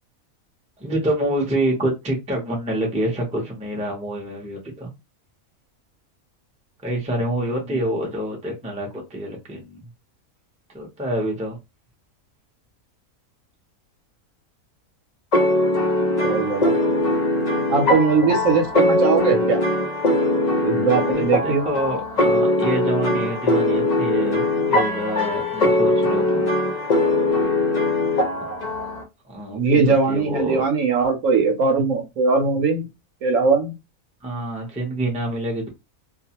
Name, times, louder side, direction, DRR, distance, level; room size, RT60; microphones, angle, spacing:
voice 1, 0.8-4.9 6.8-9.8 10.7-11.6 21.0-26.5 28.4-28.5 29.3-30.6 34.2-35.7, right 1 dB, 10° right, 0.5 m, -27 dB
sound 1, 15.3-29.0, left 1 dB, 50° left, 0.5 m, -21 dB
voice 2, 16.2-16.7 17.7-19.6 20.6-21.7 29.5-32.9 33.2-33.7, right 4 dB, 70° right, 1.0 m, -20 dB
2.4 x 2.3 x 2.8 m
omnidirectional pair, 1.5 m